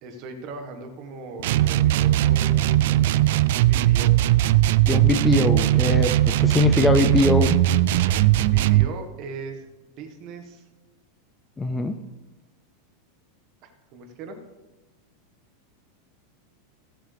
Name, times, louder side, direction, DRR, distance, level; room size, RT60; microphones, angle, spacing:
voice 1, 0.0-3.2 3.6-4.2 8.4-9.7 10.0-10.7 13.9-14.4, right 3 dB, 40° right, 5 dB, 1.5 m, -39 dB
sound 1, 1.4-8.9, right 14 dB, 65° right, 0.3 m, -19 dB
voice 2, 4.9-7.6 11.6-12.0, left 3 dB, 10° left, 8 dB, 0.4 m, -22 dB
15.5 x 7.7 x 3.4 m, 1.1 s
supercardioid pair, 155°, 0 cm